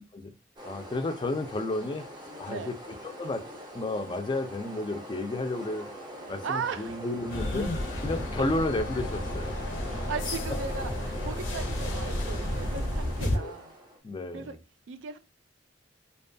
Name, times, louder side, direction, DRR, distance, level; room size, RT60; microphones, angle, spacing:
voice 1, 0.6-2.1 2.4-2.8 3.0-3.5 3.7-5.9 6.3-7.7 8.0-9.6 13.3-13.6 14.0-14.6, left 2 dB, 25° left, 0.3 m, -32 dB
sound 1, 0.6-14.0, equal, 25° right, 0.5 m, -43 dB
voice 2, 6.4-7.0 9.9-13.7 14.3-14.6 14.9-15.2, right 5 dB, 80° right, 0.4 m, -37 dB
sound 2, 7.3-13.4, left 1 dB, 80° left, 0.6 m, -32 dB
2.5 x 2.2 x 2.6 m
head